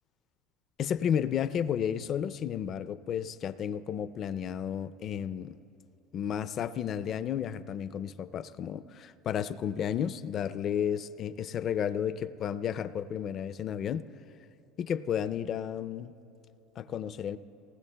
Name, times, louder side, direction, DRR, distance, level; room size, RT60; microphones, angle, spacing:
voice 1, 0.8-5.6 6.1-14.1 14.8-16.2 16.8-17.4, left 9 dB, 45° left, 15 dB, 0.4 m, -32 dB
19.0 x 19.0 x 2.2 m, 2.8 s
supercardioid pair, 100°, 0 cm